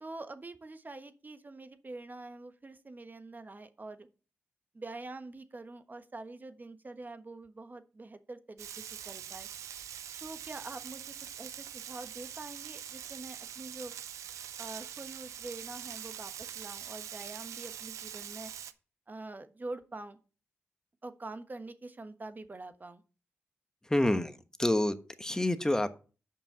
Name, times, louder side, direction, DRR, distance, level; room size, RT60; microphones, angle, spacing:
voice 1, 0.0-4.1 4.7-9.5 10.2-13.9 14.6-18.5 19.1-20.2 21.0-23.0, right 2 dB, 35° right, 10 dB, 1.2 m, -45 dB
Frying (food), 8.6-18.7, right 9 dB, 90° right, 0.5 m, -44 dB
voice 2, 23.9-25.9, left 1 dB, 10° left, 10 dB, 1.2 m, -28 dB
7.1 x 5.4 x 7.4 m, 0.36 s
supercardioid pair, 45°, 5 cm